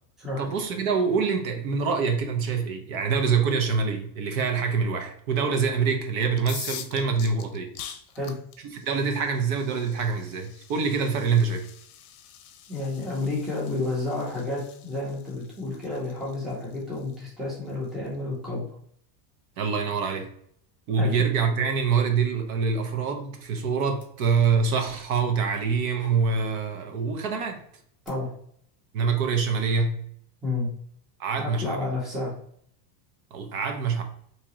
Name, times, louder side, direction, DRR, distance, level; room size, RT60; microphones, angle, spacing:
voice 1, 0.4-7.7 8.6-11.6 19.6-20.3 20.9-27.6 28.9-30.0 31.2-31.9 33.3-34.0, right 5 dB, 60° right, 5 dB, 0.8 m, -25 dB
sound 1, 6.3-18.1, left 10 dB, 60° left, 0.6 m, -45 dB
voice 2, 12.7-18.6 21.0-21.2 28.1-28.3 30.4-30.7 31.4-32.3, left 2 dB, ahead, -5 dB, 0.6 m, -30 dB
sound 2, 21.3-21.7 22.1-22.8 23.1-26.7 27.4-28.1, left 2 dB, 15° left, 1.0 m, -49 dB
3.6 x 2.9 x 2.9 m, 0.65 s
supercardioid pair, 165°, 48 cm